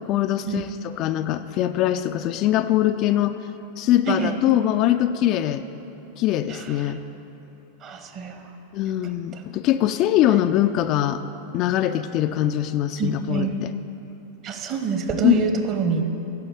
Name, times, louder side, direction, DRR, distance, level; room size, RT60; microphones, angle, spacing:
voice 1, 0.0-3.4 3.8-5.6 6.2-7.0 8.7-11.2 11.5-13.7 15.2-15.4, left 12 dB, 40° left, 9 dB, 0.3 m, -22 dB
voice 2, 4.1-4.4 6.5-6.6 7.8-8.5 9.3-9.4 13.0-13.5 14.4-16.0, right 5 dB, 35° right, 6 dB, 1.0 m, -26 dB
9.3 x 6.9 x 8.6 m, 3.0 s
figure-of-eight pair, 90°, 0 cm